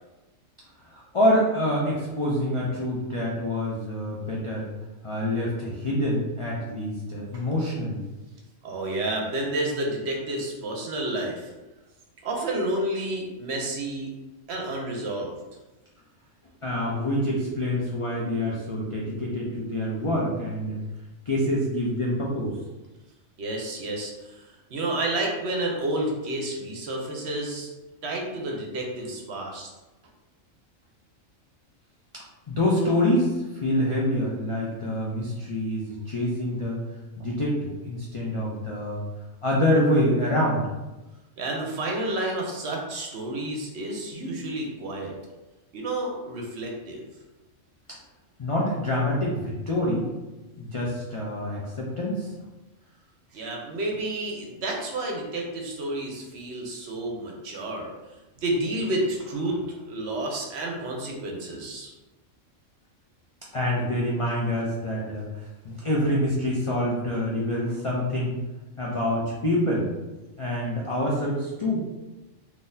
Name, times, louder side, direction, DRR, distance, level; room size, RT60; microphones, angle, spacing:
voice 1, 0.9-4.7 5.0-8.0 16.6-20.8 21.3-22.6 32.1-36.8 37.2-39.0 39.4-40.6 47.9-48.0 48.4-50.0 50.6-52.3 63.5-65.2 65.6-68.4 68.8-69.9 70.4-71.8, left 1 dB, 55° left, -4 dB, 0.3 m, -26 dB
voice 2, 8.6-11.5 12.2-14.1 14.5-15.3 23.4-27.7 28.0-29.7 41.4-45.1 45.7-47.0 53.3-57.9 58.4-59.6 59.9-61.9, right 1 dB, 60° right, 0 dB, 0.8 m, -30 dB
3.8 x 2.7 x 2.6 m, 1.1 s
omnidirectional pair, 1.3 m